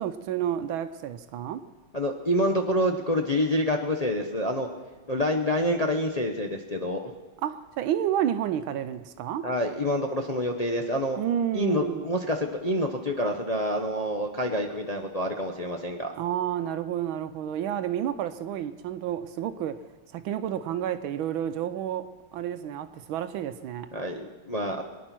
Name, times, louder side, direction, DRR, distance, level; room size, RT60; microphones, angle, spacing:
voice 1, 0.0-1.6 7.4-9.5 11.2-12.0 16.2-19.8 20.1-22.1 22.3-23.9, right 10 dB, 85° right, 1.5 m, -30 dB
voice 2, 1.9-4.7 5.1-7.1 9.4-11.2 11.5-16.1 23.9-24.8, equal, 30° left, 0.7 m, -27 dB
23.0 x 10.0 x 6.0 m
omnidirectional pair, 2.2 m